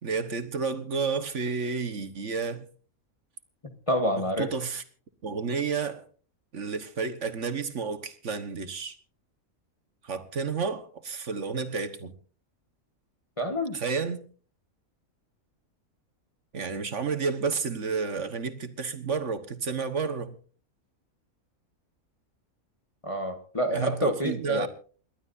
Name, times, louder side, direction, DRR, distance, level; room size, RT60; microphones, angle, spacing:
voice 1, 0.0-2.6 4.4-4.8 5.2-6.0 6.5-9.0 10.0-12.1 13.7-14.2 16.5-20.3 23.7-24.7, right 5 dB, 60° right, 1.6 m, -31 dB
voice 2, 3.6-4.5 13.4-13.8 23.0-24.7, left 1 dB, 25° left, 1.4 m, -28 dB
29.0 x 12.0 x 2.7 m
omnidirectional pair, 1.4 m